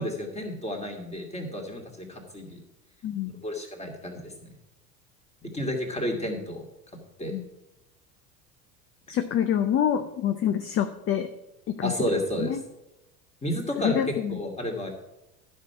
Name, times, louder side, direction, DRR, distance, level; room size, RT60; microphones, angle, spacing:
voice 1, 0.0-2.6 3.4-4.5 5.4-6.6 7.2-7.3 11.8-12.6 13.4-14.9, equal, 15° left, 1 dB, 2.5 m, -31 dB
voice 2, 9.1-11.3 11.7-12.1 12.4-12.6 13.8-14.4, left 9 dB, 30° left, 9 dB, 0.6 m, -26 dB
11.5 x 5.5 x 5.8 m, 0.90 s
hypercardioid pair, 85°, 43 cm